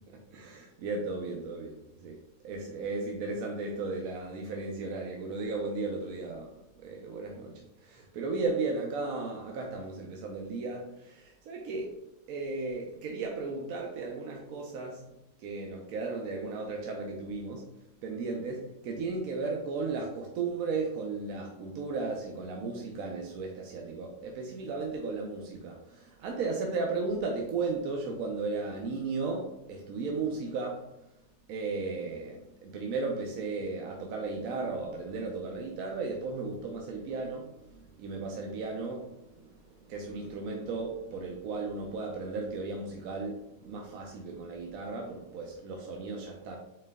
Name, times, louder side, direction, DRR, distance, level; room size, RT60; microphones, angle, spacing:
voice 1, 0.3-11.9 12.3-17.7 18.0-30.8 31.5-46.6, right 3 dB, 80° right, 0 dB, 1.1 m, -35 dB
4.5 x 3.1 x 3.5 m, 0.86 s
omnidirectional pair, 1.5 m